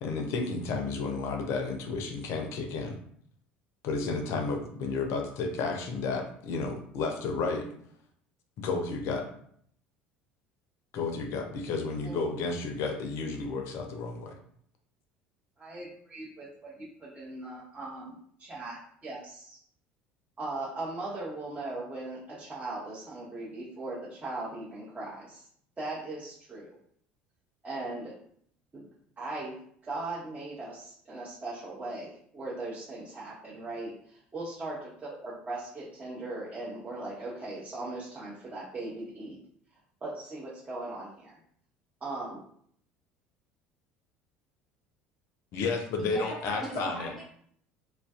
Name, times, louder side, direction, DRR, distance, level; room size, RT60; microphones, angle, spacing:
voice 1, 0.0-3.0 3.8-7.7 8.6-9.3 10.9-14.4 45.5-47.1, left 4 dB, 55° left, 4 dB, 0.5 m, -32 dB
voice 2, 15.6-18.1 18.4-19.6 20.4-25.5 25.8-26.8 27.6-28.1 28.7-28.9 29.2-34.9 35.2-39.4 40.0-41.4 42.0-42.4 46.8-47.1, right 2 dB, 30° right, -7 dB, 0.7 m, -39 dB
voice 3, 46.0-47.2, right 1 dB, ahead, -4 dB, 1.1 m, -41 dB
2.4 x 2.2 x 2.3 m, 0.64 s
hypercardioid pair, 65°, 5 cm